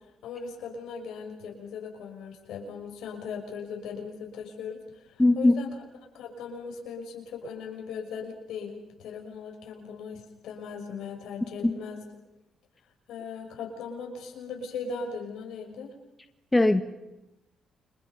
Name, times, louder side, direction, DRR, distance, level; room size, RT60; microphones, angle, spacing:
voice 1, 0.2-5.7 6.1-12.0 13.1-15.9, left 5 dB, 80° left, 2 dB, 6.5 m, -38 dB
voice 2, 5.2-5.5 11.6-11.7 16.5-16.8, left 2 dB, 15° left, 8 dB, 1.6 m, -19 dB
30.0 x 27.0 x 5.5 m, 0.94 s
cardioid pair, 90°, 0 cm